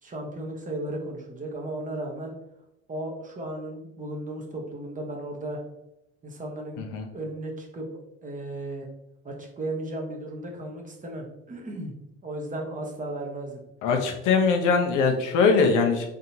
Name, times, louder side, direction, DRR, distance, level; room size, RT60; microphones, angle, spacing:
voice 1, 0.0-2.3 2.9-5.6 6.2-6.8 7.1-7.9 8.2-8.9 9.2-12.0 12.2-13.6, right 1 dB, 20° right, 0 dB, 1.2 m, -35 dB
voice 2, 6.8-7.1 13.8-16.1, left 5 dB, 60° left, 3 dB, 0.9 m, -22 dB
3.7 x 3.7 x 2.8 m, 0.88 s
hypercardioid pair, 85°, 35 cm